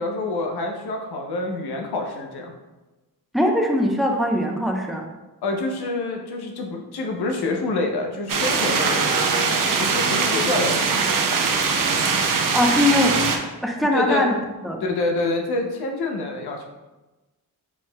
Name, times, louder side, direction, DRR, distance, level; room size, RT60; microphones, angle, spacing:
voice 1, 0.0-2.5 5.4-9.3 9.8-11.0 13.9-14.2 14.8-16.7, left 2 dB, 90° left, 2 dB, 0.7 m, -27 dB
voice 2, 3.3-5.0 12.5-13.2 13.6-14.3 14.6-14.8, left 1 dB, ahead, 0 dB, 0.7 m, -21 dB
sound 1, 8.3-13.4, right 5 dB, 60° right, 0.6 m, -21 dB
4.7 x 4.4 x 2.2 m, 1.1 s
cardioid pair, 65°, 37 cm